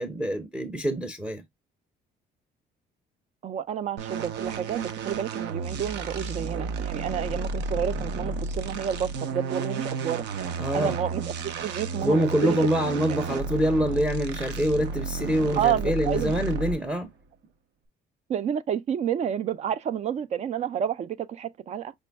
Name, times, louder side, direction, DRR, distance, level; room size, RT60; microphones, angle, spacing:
voice 1, 0.0-1.4 10.6-11.0 12.0-17.1, equal, 5° right, 0.7 m, -25 dB
voice 2, 3.4-10.3 10.7-12.6 13.1-13.2 15.6-16.3 18.3-21.9, right 9 dB, 40° right, 0.4 m, -30 dB
sound 1, 4.0-16.9, right 4 dB, 75° right, 0.8 m, -32 dB
5.2 x 2.1 x 3.3 m
cardioid pair, 135°, 18 cm